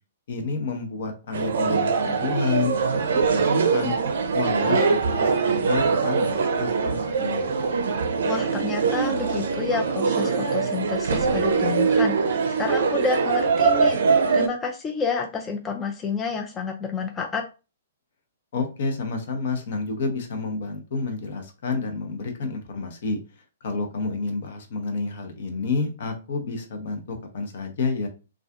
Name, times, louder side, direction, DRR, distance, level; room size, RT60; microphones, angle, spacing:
voice 1, 0.3-2.8 3.3-3.9 4.3-7.6 18.5-23.2 23.6-28.1, left 4 dB, 55° left, 5 dB, 0.6 m, -29 dB
sound 1, 1.3-14.5, right 5 dB, 60° right, 0.4 m, -23 dB
voice 2, 8.2-17.4, left 5 dB, 20° left, 3 dB, 0.3 m, -29 dB
2.4 x 2.3 x 2.3 m, 0.32 s
figure-of-eight pair, 120°, 0 cm